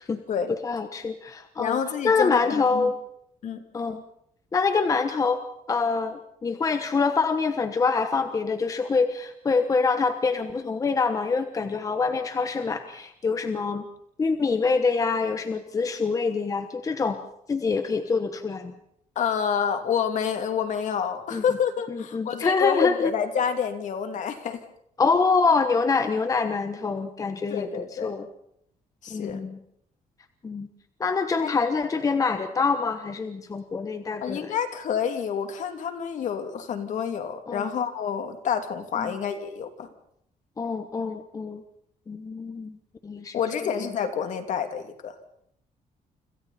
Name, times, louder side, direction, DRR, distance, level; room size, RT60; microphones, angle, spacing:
voice 1, 0.6-1.8 2.0-3.0 3.7-4.0 4.5-5.4 5.7-13.8 14.2-17.2 17.5-18.7 21.3-21.4 21.9-23.1 25.0-28.2 29.1-29.6 30.4-30.7 31.0-34.5 37.5-37.7 39.0-39.1 40.6-41.6 42.1-42.8 43.0-43.4 43.6-43.8, left 4 dB, 25° left, 8 dB, 1.2 m, -25 dB
voice 2, 1.6-2.9 3.4-3.6 19.2-24.6 27.5-28.1 29.0-29.4 31.4-31.6 34.2-39.9 43.3-45.3, left 7 dB, 60° left, 6 dB, 2.8 m, -28 dB
29.5 x 26.0 x 4.3 m, 0.71 s
cardioid pair, 175°, 15 cm